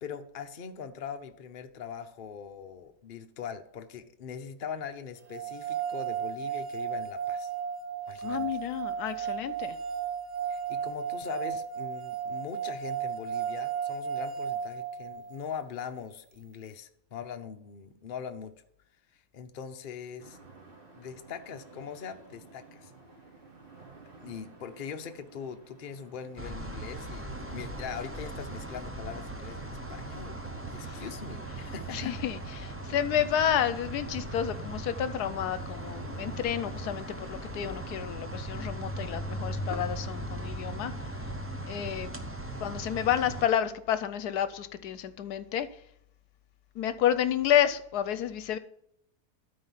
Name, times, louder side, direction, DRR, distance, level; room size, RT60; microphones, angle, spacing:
voice 1, 0.0-7.5 8.1-8.4 10.5-18.5 19.3-20.4 20.9-22.9 24.2-30.4 30.7-32.2 42.5-42.6, left 7 dB, 45° left, 0.8 m, -41 dB
sound 1, 5.3-15.4, right 8 dB, 90° right, 1.5 m, -34 dB
voice 2, 8.2-9.8 30.8-31.0 31.9-41.1 41.7-42.1 42.6-45.7 46.7-48.6, left 10 dB, 80° left, 1.2 m, -30 dB
sound 2, 20.2-38.1, right 3 dB, 35° right, 1.7 m, -52 dB
sound 3, 26.4-43.5, right 1 dB, 15° right, 0.5 m, -38 dB
13.0 x 4.4 x 5.7 m
omnidirectional pair, 1.7 m